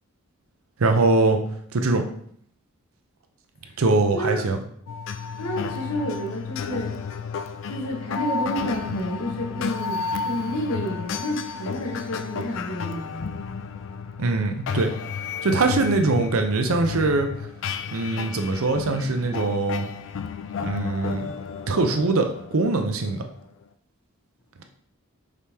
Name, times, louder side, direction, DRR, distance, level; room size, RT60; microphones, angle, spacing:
voice 1, 0.8-1.4 1.7-2.0 3.8-4.6 14.2-14.9 15.4-17.5 17.9-19.9 20.6-21.3 21.7-23.2, right 3 dB, 80° right, 5 dB, 0.6 m, -22 dB
sound 1, 4.9-23.6, left 5 dB, 60° left, 0.3 m, -32 dB
voice 2, 5.4-7.0 7.7-13.4, equal, 90° left, 0 dB, 1.1 m, -30 dB
5.0 x 3.4 x 2.8 m, 0.62 s
head